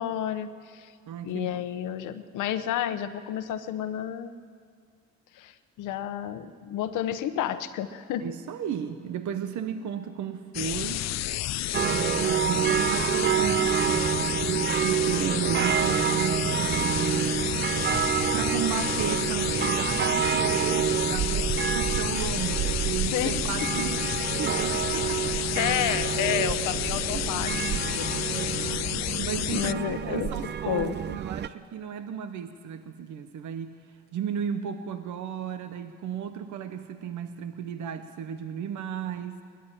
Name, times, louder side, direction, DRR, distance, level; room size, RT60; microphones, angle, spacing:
voice 1, 0.0-0.9 1.2-4.4 5.4-5.5 5.8-8.2 23.1-23.4 25.6-28.2 29.5-30.3 30.7-31.2, left 10 dB, 90° left, 11 dB, 1.0 m, -31 dB
voice 2, 1.1-1.6 8.2-11.1 11.8-17.4 18.3-24.1 24.4-25.6 27.1-27.3 28.3-33.7 34.1-39.4, right 8 dB, 75° right, 9 dB, 1.0 m, -34 dB
sound 1, 10.5-29.7, left 14 dB, 60° left, 0.5 m, -31 dB
sound 2, 11.7-31.5, right 9 dB, 35° right, 0.4 m, -28 dB
19.5 x 14.0 x 9.9 m, 2.2 s
cardioid pair, 90°, 30 cm